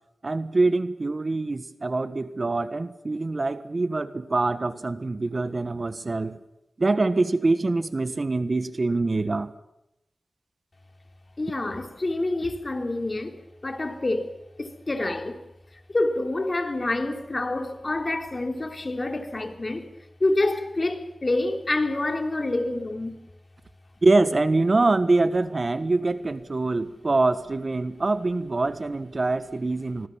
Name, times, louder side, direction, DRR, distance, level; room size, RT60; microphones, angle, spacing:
voice 1, 0.2-6.4 6.8-9.5 24.0-30.1, right 3 dB, 45° right, 1.4 m, -24 dB
voice 2, 11.4-15.4 15.9-19.9 20.2-23.3, left 2 dB, 40° left, 3.5 m, -27 dB
26.0 x 20.5 x 7.4 m
wide cardioid pair, 75°, 0 cm